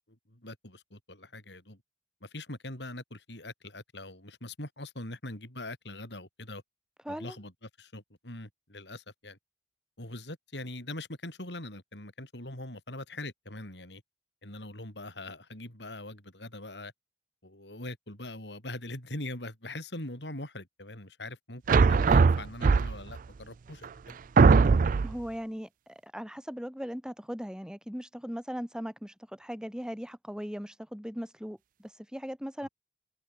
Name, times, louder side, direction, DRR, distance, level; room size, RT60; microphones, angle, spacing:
voice 1, 0.1-1.8 2.2-6.6 7.1-9.4 10.0-14.0 14.4-16.9 17.4-24.2 32.6-32.7, left 1 dB, 70° left, 7.6 m, -42 dB
voice 2, 7.1-7.4 25.0-32.7, equal, 5° right, 3.5 m, -39 dB
sound 1, 21.7-23.2 23.8-23.9 24.4-25.2, right 4 dB, 50° right, 0.4 m, -20 dB
head